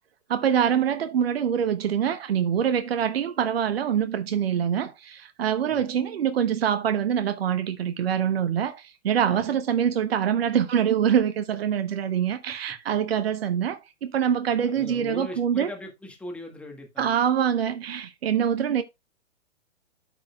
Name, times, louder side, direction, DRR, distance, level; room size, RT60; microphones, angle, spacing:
voice 1, 0.3-15.7 17.0-18.8, right 8 dB, 55° right, 0.9 m, -25 dB
voice 2, 14.7-17.1, left 1 dB, 5° left, 1.5 m, -39 dB
13.0 x 4.8 x 2.3 m
figure-of-eight pair, 125°, 37 cm